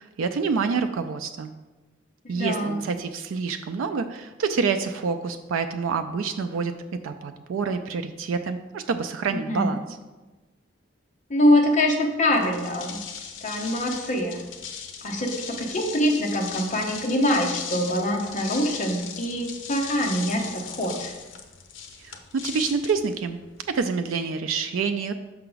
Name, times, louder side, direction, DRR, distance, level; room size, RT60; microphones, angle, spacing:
voice 1, 0.0-1.5 2.3-6.8 7.0-10.0 22.0-23.4 23.7-25.1, right 5 dB, 90° right, 7 dB, 0.4 m, -27 dB
voice 2, 2.3-2.8 9.3-9.7 11.3-13.0 13.4-14.4 15.0-21.1, left 1 dB, 40° left, 2 dB, 0.9 m, -24 dB
sound 1, 12.3-23.8, left 7 dB, 80° left, 0.7 m, -38 dB
5.7 x 5.6 x 3.9 m, 1.2 s
head